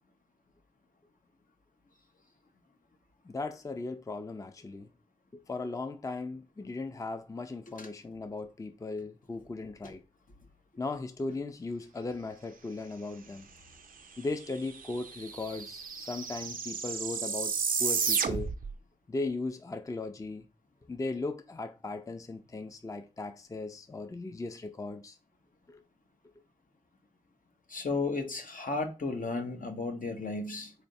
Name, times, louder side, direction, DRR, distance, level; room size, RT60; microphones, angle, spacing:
voice 1, 3.3-4.9 5.3-10.0 10.8-13.5 14.2-18.5 19.1-20.4 20.9-25.2 25.7-25.8, left 3 dB, 25° left, 0.4 m, -37 dB
sound 1, 14.2-14.3 14.5-18.7, right 5 dB, 80° right, 0.4 m, -32 dB
voice 2, 27.7-30.7, left 3 dB, 75° left, 0.8 m, -34 dB
3.9 x 3.2 x 2.6 m
wide cardioid pair, 65°, 14 cm